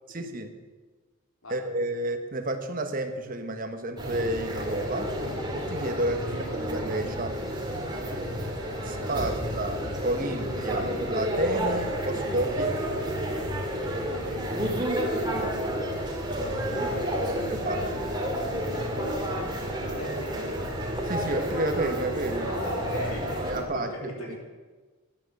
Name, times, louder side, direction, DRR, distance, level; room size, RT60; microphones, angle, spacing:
voice 1, 0.1-0.5 1.5-5.1 5.6-6.2 6.5-7.4 8.8-12.8 15.3-15.5 16.8-16.9 17.5-18.1 21.0-22.5 23.5-24.4, right 1 dB, 40° right, 7 dB, 1.3 m, -31 dB
sound 1, 4.0-23.6, equal, 20° right, 2.2 m, -30 dB
voice 2, 6.0-6.5 9.3-9.4 14.1-14.6 15.4-16.0 16.7-17.3 19.8-20.5 22.4-24.4, left 1 dB, 75° left, -1 dB, 3.9 m, -39 dB
12.5 x 11.0 x 7.9 m, 1.3 s
head